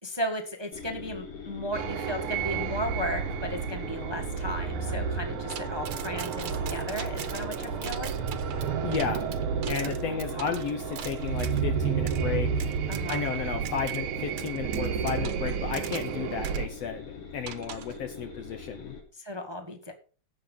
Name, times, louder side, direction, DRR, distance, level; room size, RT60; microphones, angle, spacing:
voice 1, 0.0-8.1 9.8-9.9 12.9-13.2 19.1-19.9, left 1 dB, 15° right, 5 dB, 1.0 m, -35 dB
sound 1, 0.7-19.0, left 5 dB, 90° left, 4.6 m, -43 dB
sound 2, 1.7-16.7, right 7 dB, 90° right, 2.7 m, -31 dB
sound 3, 5.5-11.6 12.1-12.2 12.6-13.4 13.6-14.0 14.4-16.2 16.4-16.6 17.5-18.0, right 10 dB, 60° right, 1.8 m, -41 dB
voice 2, 8.8-9.4 9.7-12.7 13.1-18.9, left 7 dB, 65° left, 6 dB, 2.0 m, -33 dB
16.0 x 6.6 x 5.6 m, 0.39 s
omnidirectional pair, 3.3 m